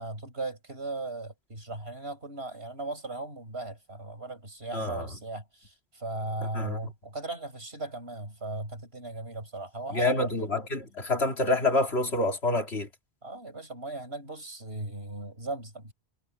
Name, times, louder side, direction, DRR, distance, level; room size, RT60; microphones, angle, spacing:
voice 1, 0.0-10.5 13.2-15.9, right 2 dB, 75° right, 7.5 m, -37 dB
voice 2, 4.7-5.1 6.5-6.8 9.9-12.9, left 2 dB, 85° left, 3.3 m, -27 dB
omnidirectional pair, 1.1 m